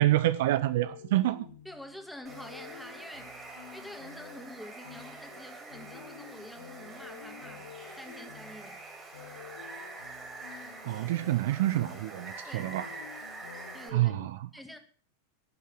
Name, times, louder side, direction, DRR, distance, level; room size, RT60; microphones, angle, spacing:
voice 1, 0.0-1.5 10.8-12.9 13.9-14.4, right 15 dB, 55° right, 0.6 m, -27 dB
sound 1, 0.5-14.3, left 8 dB, 65° left, 1.4 m, -50 dB
voice 2, 1.6-3.4 3.7-7.7 8.0-8.8 12.5-12.7 13.7-14.2 14.5-14.8, left 1 dB, ahead, 2.0 m, -47 dB
Water, 2.3-13.9, right 3 dB, 15° right, 3.8 m, -46 dB
11.5 x 7.4 x 9.1 m
figure-of-eight pair, 90°, 0 cm